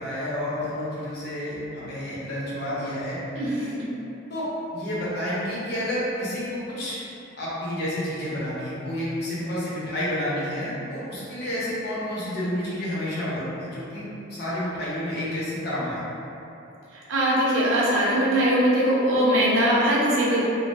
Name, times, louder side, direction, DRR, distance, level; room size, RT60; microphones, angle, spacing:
voice 1, 0.0-3.2 4.3-7.0 7.4-16.0, left 1 dB, 55° left, -9 dB, 0.8 m, -30 dB
voice 2, 3.4-3.7 16.9-20.4, right 1 dB, 80° right, -6 dB, 0.6 m, -21 dB
2.6 x 2.1 x 3.5 m, 2.9 s
head